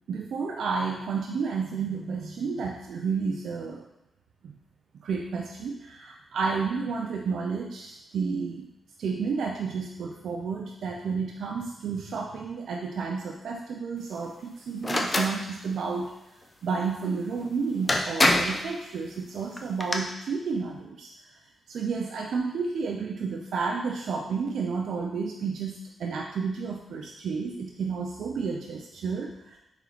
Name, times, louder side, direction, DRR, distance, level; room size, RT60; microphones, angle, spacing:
voice 1, 0.1-3.9 4.4-4.5 5.0-8.7 9.0-16.1 16.6-21.1 21.7-29.6, right 5 dB, 75° right, 0 dB, 0.4 m, -31 dB
sound 1, 14.8-15.3 17.4-17.5 17.9-18.6 19.6-20.0, left 1 dB, 30° left, 0.5 m, -23 dB
3.7 x 3.3 x 2.9 m, 0.92 s
supercardioid pair, 55°, 0 cm